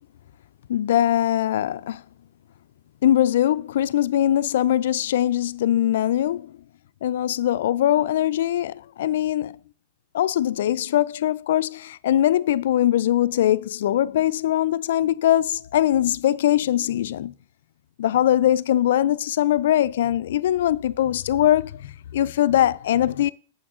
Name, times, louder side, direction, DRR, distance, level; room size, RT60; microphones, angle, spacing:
voice 1, 0.7-2.0 3.0-6.5 7.0-9.6 10.1-17.3 18.0-23.3, left 12 dB, 75° left, 0.4 m, -21 dB
8.6 x 7.1 x 3.7 m
hypercardioid pair, 130°, 0 cm